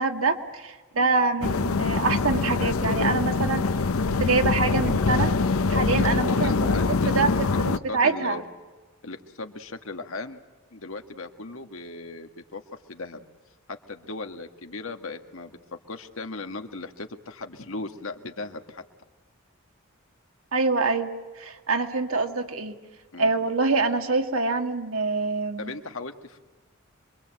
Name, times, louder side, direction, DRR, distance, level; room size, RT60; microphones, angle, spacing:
voice 1, 0.0-3.6 4.1-5.3 5.7-6.7 7.1-8.4 20.5-21.1 21.4-22.8 23.2-25.7, right 3 dB, 90° right, 4 dB, 2.1 m, -25 dB
sound 1, 1.4-7.8, left 4 dB, 90° left, 0.7 m, -24 dB
voice 2, 6.3-7.2 7.9-8.4 9.0-10.4 10.7-12.6 12.9-13.2 13.7-15.5 15.9-18.8 23.1-23.3 25.6-26.4, left 3 dB, 70° left, 5 dB, 1.8 m, -37 dB
26.0 x 23.5 x 7.7 m, 1.3 s
head